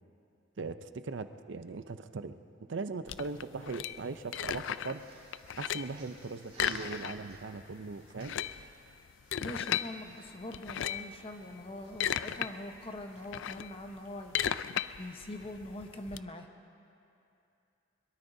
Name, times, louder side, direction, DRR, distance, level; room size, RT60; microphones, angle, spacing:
voice 1, 0.6-2.4 2.7-5.0 5.6-8.3, right 4 dB, 70° right, 10 dB, 0.6 m, -39 dB
sound 1, 3.1-5.0 5.3-6.0 6.5-7.4 7.7-7.8 8.1-9.9 10.5-11.1 11.7-12.5 12.9-16.2, left 9 dB, 80° left, 0.4 m, -35 dB
sound 2, 4.0-14.3, right 2 dB, 30° right, 3.6 m, -57 dB
voice 2, 9.4-14.3 15.0-16.5, left 1 dB, 30° left, 4 dB, 1.0 m, -43 dB
22.5 x 22.5 x 2.7 m, 2.7 s
head